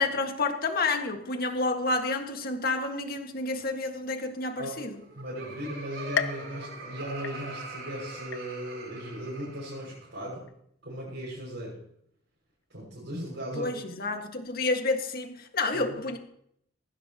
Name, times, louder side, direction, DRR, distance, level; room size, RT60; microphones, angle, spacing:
voice 1, 0.0-5.0 13.6-16.2, left 3 dB, 50° left, 4 dB, 1.8 m, -29 dB
Laughter, 4.9-10.1, right 3 dB, 85° right, 4.0 m, -43 dB
voice 2, 5.1-10.5 10.8-11.8 12.7-13.7 15.7-16.0, equal, 65° right, -6 dB, 6.2 m, -37 dB
sound 1, 6.1-7.9 8.3-8.9 9.4-9.5 10.5-10.6, left 6 dB, 70° left, 0.9 m, -35 dB
19.0 x 16.0 x 3.0 m, 0.70 s
head